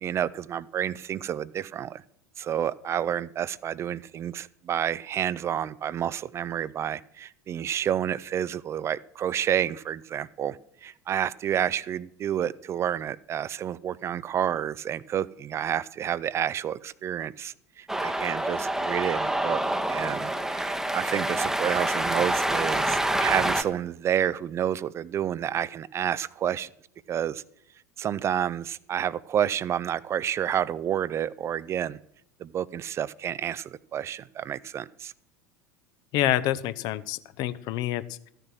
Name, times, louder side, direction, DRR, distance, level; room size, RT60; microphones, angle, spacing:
voice 1, 0.0-2.0 2.4-19.6 19.9-26.7 27.1-27.4 28.0-32.0 32.4-35.1, right 9 dB, 30° right, 19 dB, 0.3 m, -29 dB
Cheering, 17.9-23.6, right 1 dB, 5° right, 0.8 m, -27 dB
voice 2, 36.1-38.3, left 13 dB, 50° left, 14 dB, 0.6 m, -27 dB
13.5 x 6.7 x 6.1 m, 0.74 s
figure-of-eight pair, 75°, 9 cm